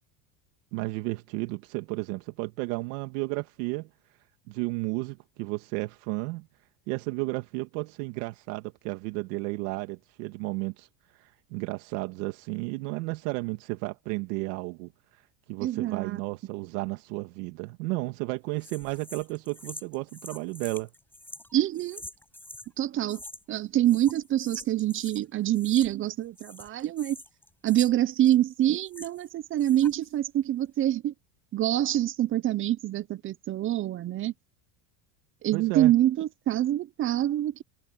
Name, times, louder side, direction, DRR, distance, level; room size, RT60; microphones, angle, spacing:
voice 1, 0.7-3.9 4.5-6.5 6.9-10.9 11.1-15.2 15.5-20.9 35.5-35.9, right 24 dB, 70° right, 1.8 m, -33 dB
voice 2, 15.6-16.2 21.5-22.0 22.8-23.2 23.5-27.2 27.6-31.1 31.5-34.3 35.4-37.6, right 13 dB, 25° right, 0.5 m, -26 dB
sound 1, 18.6-22.7 23.1-23.6 23.8-25.2 25.5-26.1 26.4-29.3 29.6-30.1, left 1 dB, 5° left, 6.7 m, -46 dB
supercardioid pair, 130°, 48 cm